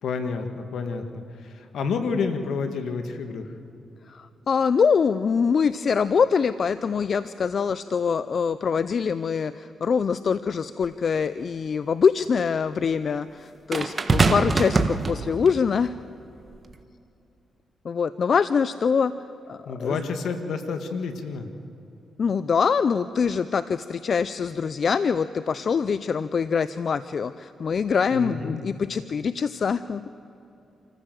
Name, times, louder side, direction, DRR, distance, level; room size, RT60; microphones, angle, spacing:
voice 1, 0.0-3.5 19.7-21.5 28.1-28.6, left 5 dB, 80° left, 7 dB, 1.7 m, -29 dB
voice 2, 4.1-15.9 17.8-19.1 19.5-20.0 22.2-30.0, left 6 dB, 60° left, 14 dB, 0.5 m, -24 dB
sound 1, 10.8-10.9 13.7-15.6 16.5-16.7, right 3 dB, 40° right, 1.4 m, -23 dB
27.0 x 14.5 x 7.6 m, 2.8 s
cardioid pair, 65°, 0 cm